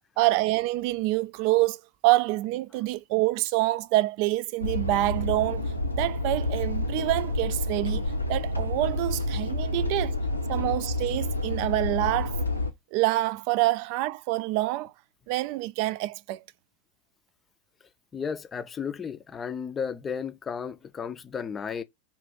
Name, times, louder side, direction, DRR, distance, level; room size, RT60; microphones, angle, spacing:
voice 1, 0.2-5.6 5.9-8.0 8.3-10.2 10.5-12.4 12.9-14.9 15.3-16.4, right 18 dB, 45° right, 0.3 m, -26 dB
sound 1, 4.6-12.7, left 1 dB, 85° left, 0.7 m, -29 dB
voice 2, 17.8-21.8, left 6 dB, 20° left, 0.5 m, -34 dB
3.9 x 2.4 x 3.7 m
figure-of-eight pair, 90°, 0 cm